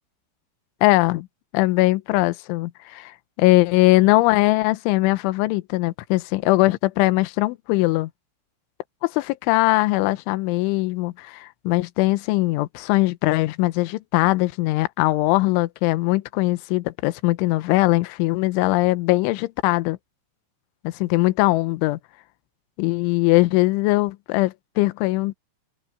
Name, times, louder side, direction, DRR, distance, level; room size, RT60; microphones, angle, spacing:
voice 1, 0.8-1.3 1.5-8.1 9.0-20.0 20.8-22.0 22.8-25.3, left 20 dB, 80° left, 3.1 m, -21 dB
omnidirectional pair, 5.9 m